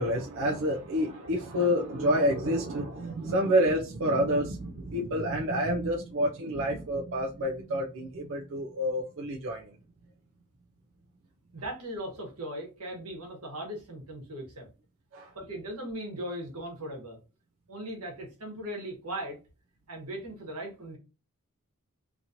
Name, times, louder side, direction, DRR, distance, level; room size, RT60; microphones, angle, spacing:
voice 1, 0.0-9.7 15.1-15.3, equal, 60° right, 0.5 m, -28 dB
voice 2, 11.5-14.7 15.3-17.2 17.7-19.4 19.9-21.0, right 1 dB, 85° right, 1.2 m, -38 dB
2.9 x 2.8 x 2.5 m
head